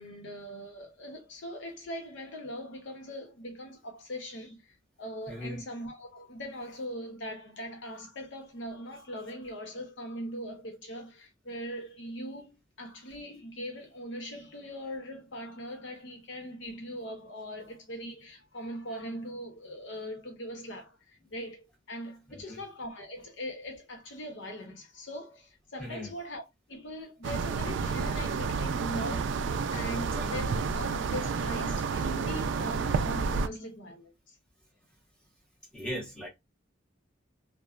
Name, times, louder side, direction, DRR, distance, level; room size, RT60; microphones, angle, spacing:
voice 1, 0.0-26.4 26.7-34.4, equal, 70° left, 0.8 m, -41 dB
voice 2, 5.3-5.6 22.3-22.6 25.8-26.1 30.1-30.3 35.7-36.3, equal, 5° left, 1.1 m, -38 dB
sound 1, 27.2-33.5, right 5 dB, 70° right, 0.3 m, -30 dB
3.0 x 2.0 x 2.4 m
head